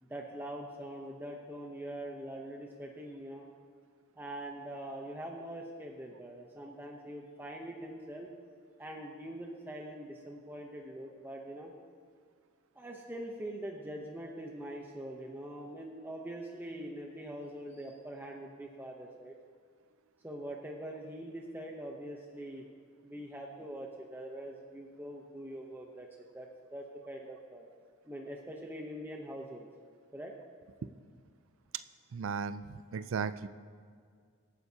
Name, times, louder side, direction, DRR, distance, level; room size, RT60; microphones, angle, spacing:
voice 1, 0.0-3.5 4.2-8.3 8.8-11.7 12.7-19.4 20.2-22.7 23.0-26.1 26.3-27.7 28.0-29.7 30.1-30.3, right 1 dB, 10° right, 0 dB, 0.7 m, -43 dB
voice 2, 32.1-33.5, right 6 dB, 65° right, 13 dB, 0.4 m, -36 dB
24.0 x 9.0 x 2.8 m, 2.1 s
head